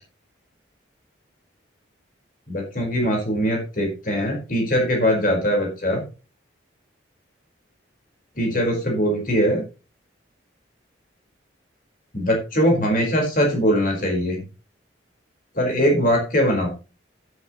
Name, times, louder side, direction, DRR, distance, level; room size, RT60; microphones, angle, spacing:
voice 1, 2.5-6.0 8.4-9.6 12.1-14.4 15.5-16.7, equal, 45° left, 0 dB, 4.9 m, -21 dB
12.0 x 11.0 x 3.2 m, 0.33 s
head